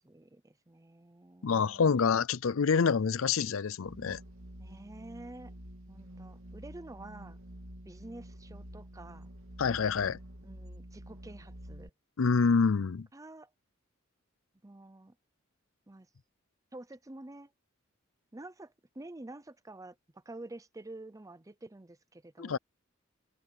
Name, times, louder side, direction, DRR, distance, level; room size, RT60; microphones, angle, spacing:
voice 1, 0.0-1.9 4.6-5.5 5.9-7.4 7.8-9.3 10.4-11.9 13.1-13.5 14.6-15.1 15.9-16.1 16.7-17.5 18.3-22.6, right 2 dB, 15° right, 0.6 m, -49 dB
voice 2, 1.4-4.2 9.6-10.2 12.2-13.1 22.4-22.6, left 5 dB, 75° left, 0.5 m, -27 dB
sound 1, 3.8-11.9, equal, 85° right, 2.8 m, -48 dB
head